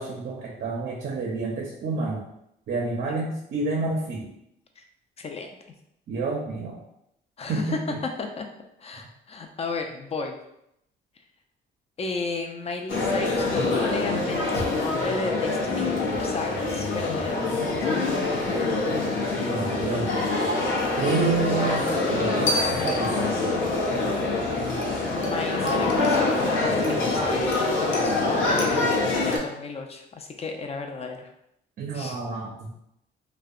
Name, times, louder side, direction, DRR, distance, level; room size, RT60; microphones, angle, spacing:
voice 1, 0.0-2.3 2.7-4.3 6.1-6.8 7.5-8.0 19.1-20.1 21.0-23.3 31.8-32.7, right 3 dB, 55° right, -1 dB, 0.5 m, -29 dB
voice 2, 5.2-5.5 7.4-7.8 8.2-8.5 8.8-10.4 12.0-18.0 25.2-31.3 31.9-32.2, left 3 dB, 30° left, 4 dB, 0.4 m, -33 dB
sound 1, 12.9-29.4, left 2 dB, 75° left, 0.6 m, -25 dB
2.6 x 2.1 x 2.4 m, 0.79 s
cardioid pair, 90°, 20 cm